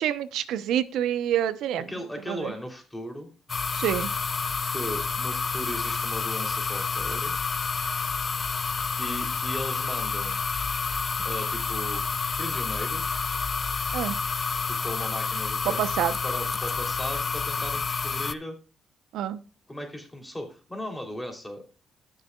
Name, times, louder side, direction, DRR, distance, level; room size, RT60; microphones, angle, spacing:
voice 1, 0.0-1.9 2.3-2.5 3.7-4.1 13.9-14.2 15.8-16.1 19.1-19.4, right 11 dB, 85° right, 13 dB, 0.8 m, -27 dB
voice 2, 1.9-3.3 4.7-7.4 9.0-10.4 11.2-12.0 12.4-13.2 14.8-15.8 16.2-18.5 19.7-21.6, left 1 dB, 10° left, 3 dB, 3.2 m, -37 dB
sound 1, 3.5-18.3, left 5 dB, 35° left, 0.5 m, -29 dB
19.0 x 6.7 x 2.3 m, 0.32 s
cardioid pair, 90°, 0 cm